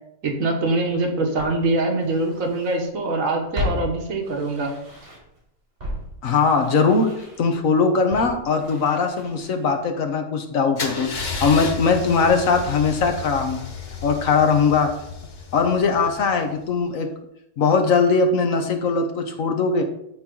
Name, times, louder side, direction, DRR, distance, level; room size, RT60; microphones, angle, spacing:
voice 1, 0.2-4.7, right 2 dB, 85° right, 2 dB, 1.8 m, -23 dB
Walk footsteps, 0.7-0.8 1.4-2.9 3.1-5.4 5.8-9.8 10.1-10.2, left 1 dB, 60° right, 4.1 m, -35 dB
voice 2, 6.2-7.1 7.4-13.6 14.0-14.9 15.5-17.1 17.6-19.8, left 4 dB, 80° left, 5 dB, 1.5 m, -20 dB
Car / Engine starting / Idling, 10.8-16.6, left 5 dB, 40° left, 1.1 m, -33 dB
13.0 x 4.6 x 3.9 m, 0.78 s
omnidirectional pair, 1.4 m